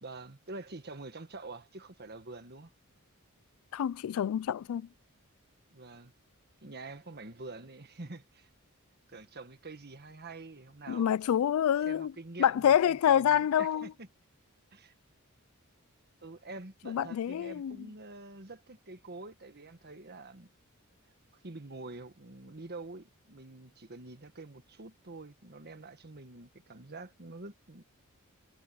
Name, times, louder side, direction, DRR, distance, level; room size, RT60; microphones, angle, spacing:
voice 1, 0.0-2.7 5.7-6.1 6.6-8.5 9.1-11.1 11.9-14.1 14.7-14.9 16.2-20.5 21.4-27.8, right 3 dB, 45° right, 1.6 m, -46 dB
voice 2, 3.7-4.9 10.9-12.1 12.4-13.9 16.9-17.8, left 9 dB, 70° left, 0.3 m, -27 dB
head